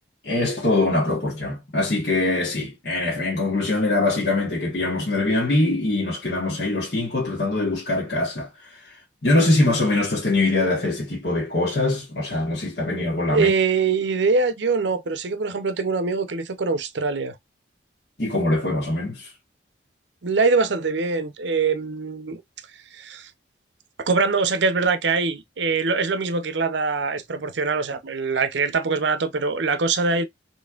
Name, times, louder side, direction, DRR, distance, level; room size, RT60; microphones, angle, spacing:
voice 1, 0.2-8.5 9.2-13.5 18.2-19.3, left 2 dB, 55° left, 1.5 m, -23 dB
voice 2, 13.3-17.3 20.2-22.4 22.9-23.3 24.0-30.2, right 4 dB, 75° right, 0.6 m, -23 dB
4.3 x 3.2 x 2.4 m
head